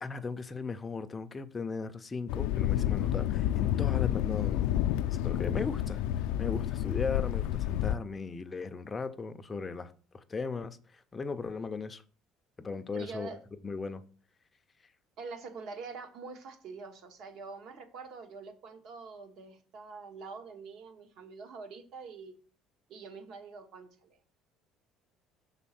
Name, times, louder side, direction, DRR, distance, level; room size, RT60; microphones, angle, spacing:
voice 1, 0.0-4.7 5.1-6.0 6.4-12.0 12.6-13.3 13.6-14.0, left 4 dB, 15° left, 0.4 m, -37 dB
Thunder, 2.3-8.0, left 12 dB, 85° left, 0.3 m, -29 dB
voice 2, 12.9-13.4 15.2-22.3 22.9-24.2, right 4 dB, 55° right, 1.0 m, -45 dB
6.1 x 4.0 x 5.7 m
cardioid pair, 170°, 0 cm